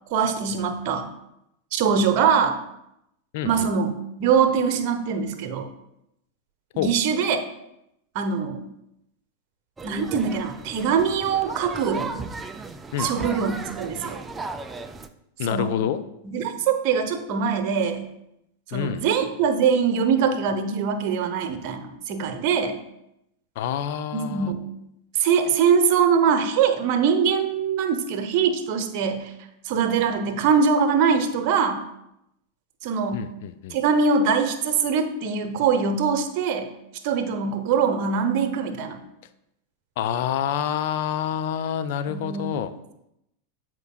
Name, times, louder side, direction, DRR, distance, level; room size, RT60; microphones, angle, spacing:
voice 1, 0.1-1.0 1.7-2.6 3.4-3.9 4.2-5.7 6.7-7.4 8.1-8.6 9.8-12.1 13.0-14.2 15.5-15.7 16.3-18.1 18.7-22.8 24.1-24.6 25.1-29.3 29.6-31.8 32.8-33.3 33.7-36.7 37.0-39.0 42.1-42.6, right 6 dB, 45° right, 7 dB, 0.9 m, -23 dB
voice 2, 3.3-3.7 6.8-6.9 12.9-13.3 15.4-16.0 18.7-19.1 23.6-24.5 33.1-33.8 40.0-42.7, left 9 dB, 50° left, 11 dB, 0.5 m, -27 dB
sound 1, 9.8-15.1, right 4 dB, 15° right, 0.4 m, -35 dB
13.0 x 4.6 x 2.4 m, 0.82 s
figure-of-eight pair, 90°, 0 cm